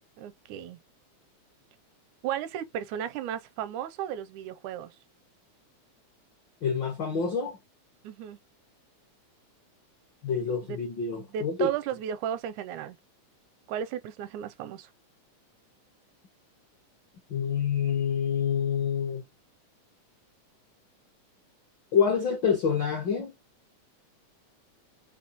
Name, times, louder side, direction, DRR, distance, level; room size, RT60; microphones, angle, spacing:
voice 1, 0.2-0.8 2.2-4.9 8.0-8.4 10.6-10.8 11.3-13.0 13.7-14.9, right 10 dB, 85° right, 2.0 m, -34 dB
voice 2, 6.6-7.6 10.2-11.7 17.3-19.2 21.9-23.3, left 7 dB, 65° left, 1.1 m, -27 dB
4.8 x 3.3 x 2.9 m
omnidirectional pair, 3.4 m